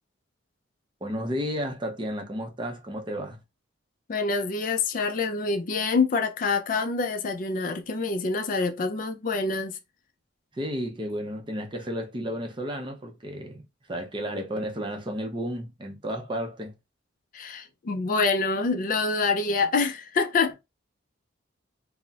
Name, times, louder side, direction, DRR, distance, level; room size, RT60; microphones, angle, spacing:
voice 1, 1.0-3.4 10.5-13.6 13.9-16.7, equal, 25° right, 0.5 m, -32 dB
voice 2, 4.1-9.8 17.3-20.6, left 4 dB, 40° left, 0.4 m, -26 dB
4.0 x 2.0 x 2.3 m
head